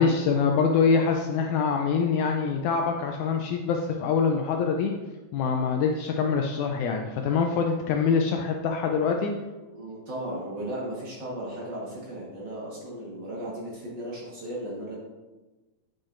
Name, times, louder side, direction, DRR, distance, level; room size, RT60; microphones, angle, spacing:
voice 1, 0.0-4.9 5.3-9.3, left 5 dB, 85° left, 3 dB, 1.7 m, -24 dB
voice 2, 9.7-14.9, right 1 dB, 55° right, -5 dB, 1.3 m, -36 dB
8.2 x 6.3 x 2.5 m, 1.2 s
omnidirectional pair, 3.9 m